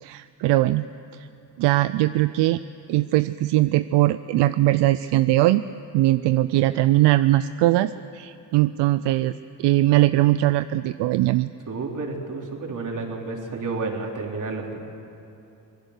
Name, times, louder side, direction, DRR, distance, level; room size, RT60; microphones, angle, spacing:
voice 1, 0.0-0.9 1.1-1.3 1.6-2.6 2.9-5.7 5.9-9.3 9.6-11.5, right 16 dB, 80° right, 13 dB, 0.6 m, -20 dB
voice 2, 11.7-14.8, right 3 dB, 45° right, 1 dB, 3.7 m, -30 dB
25.5 x 19.0 x 6.7 m, 2.7 s
cardioid pair, 80°, 42 cm